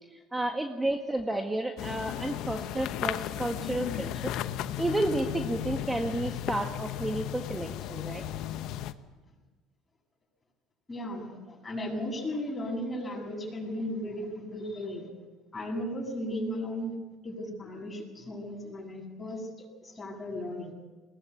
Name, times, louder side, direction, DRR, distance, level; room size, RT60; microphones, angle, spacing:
voice 1, 0.1-4.3 4.8-8.2, right 1 dB, 10° right, 4 dB, 1.7 m, -31 dB
sound 1, 1.8-8.9, left 12 dB, 65° left, 1.0 m, -35 dB
voice 2, 10.9-15.1 15.5-17.0 17.2-19.5 19.8-20.7, left 1 dB, 25° left, 1 dB, 7.9 m, -35 dB
21.0 x 18.5 x 8.4 m, 1.2 s
supercardioid pair, 80°, 0 cm